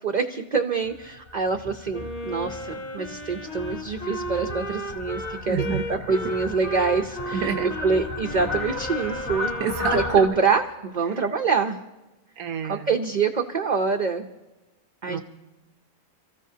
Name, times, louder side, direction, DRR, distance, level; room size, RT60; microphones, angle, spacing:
voice 1, 0.0-7.5 7.8-9.5 9.9-11.8 12.6-14.3 15.0-15.2, right 5 dB, 45° right, 5 dB, 0.6 m, -25 dB
Fowl, 0.8-10.3, left 2 dB, 50° left, 3.4 m, -35 dB
Wind instrument woodwind instrument, 1.9-10.4, equal, 70° left, 2.1 m, -35 dB
voice 2, 5.5-5.8 7.3-7.7 8.6-8.7 9.6-10.3 11.1-11.2 12.4-12.9 15.1-15.2, right 7 dB, 85° right, 8 dB, 1.2 m, -29 dB
29.0 x 14.5 x 2.8 m, 1.1 s
omnidirectional pair, 1.5 m